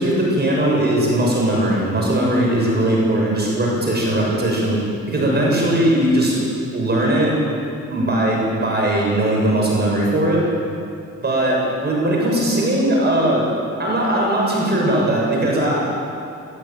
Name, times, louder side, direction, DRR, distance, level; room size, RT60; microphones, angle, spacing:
voice 1, 0.0-4.8 5.1-6.4 6.7-7.3 7.9-10.4 11.2-13.4 13.8-15.8, right 1 dB, 35° right, -3 dB, 7.8 m, -19 dB
20.5 x 18.0 x 9.3 m, 2.4 s
cardioid pair, 90°, 29 cm